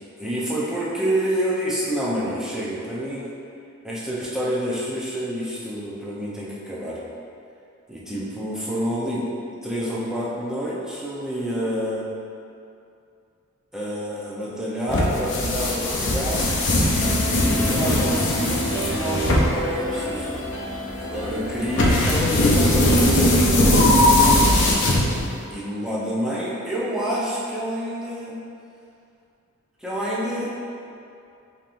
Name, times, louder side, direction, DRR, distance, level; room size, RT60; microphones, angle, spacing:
voice 1, 0.2-3.2 3.8-7.0 7.9-9.2 9.6-12.0 13.7-20.4 20.9-23.6 25.5-28.4 29.8-30.5, equal, 5° right, -7 dB, 0.6 m, -28 dB
sound 1, 14.9-25.5, left 1 dB, 55° left, 0.6 m, -20 dB
sound 2, 16.9-23.1, equal, 90° left, 0.8 m, -32 dB
5.1 x 2.8 x 2.5 m, 2.5 s
head